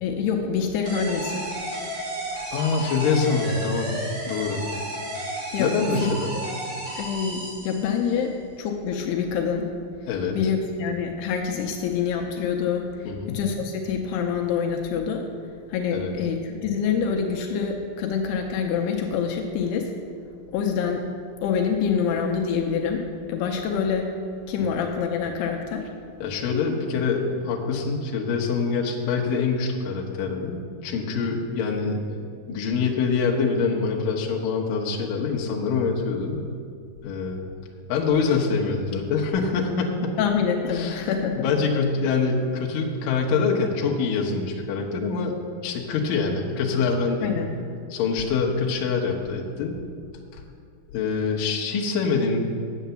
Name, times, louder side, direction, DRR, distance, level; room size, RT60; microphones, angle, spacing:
voice 1, 0.0-1.5 5.5-6.4 7.0-9.7 10.3-15.3 15.7-19.9 20.5-21.0 21.4-24.1 24.5-25.9 40.2-41.5 47.2-47.5, left 6 dB, 85° left, 3 dB, 2.7 m, -26 dB
sound 1, 0.9-8.2, right 1 dB, 55° right, 3.4 m, -33 dB
voice 2, 2.5-3.9 4.3-4.6 5.6-6.3 10.1-10.4 13.1-13.4 15.9-16.1 24.6-24.7 26.2-32.0 32.5-36.4 37.0-37.4 37.9-40.1 40.7-41.1 41.4-45.3 45.6-47.4 47.9-49.8 50.9-52.5, left 4 dB, 65° left, -1 dB, 2.5 m, -25 dB
9.2 x 8.3 x 6.9 m, 2.3 s
omnidirectional pair, 4.8 m